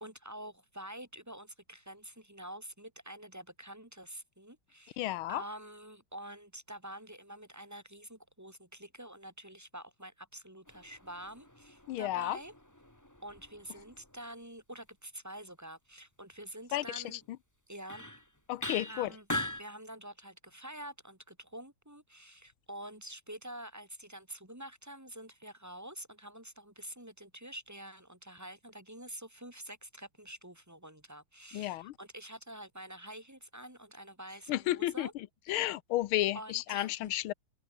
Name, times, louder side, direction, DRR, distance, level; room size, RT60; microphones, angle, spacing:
voice 1, 0.0-5.0 5.3-12.5 13.2-17.2 17.7-18.0 18.9-19.3 19.6-35.1 35.5-35.7 36.3-37.1, right 1 dB, 10° right, 2.1 m, -47 dB
voice 2, 5.0-5.4 11.9-12.4 16.7-17.4 18.5-19.1 31.5-31.9 34.5-37.3, left 15 dB, 80° left, 1.6 m, -33 dB
sound 1, 10.7-14.1 17.2-17.3 17.9-18.2 18.6-19.6, left 1 dB, 10° left, 3.4 m, -41 dB
open air
omnidirectional pair, 2.4 m